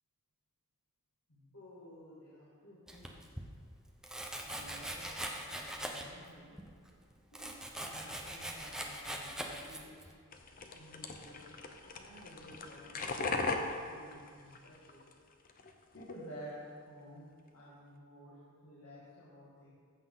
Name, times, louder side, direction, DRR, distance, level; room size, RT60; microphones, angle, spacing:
voice 1, 1.3-3.4 4.4-6.5 7.3-10.1 10.7-11.5 11.9-13.5 13.8-15.0 15.9-17.2 17.5-19.7, equal, 85° left, -8 dB, 2.3 m, -53 dB
Domestic sounds home sounds, 2.9-3.5 4.0-6.3 6.6-10.1, right 1 dB, 5° right, 0.7 m, -42 dB
sound 1, 10.3-15.1 15.4-16.1, left 3 dB, 40° left, 0.7 m, -39 dB
14.5 x 7.3 x 4.0 m, 2.1 s
head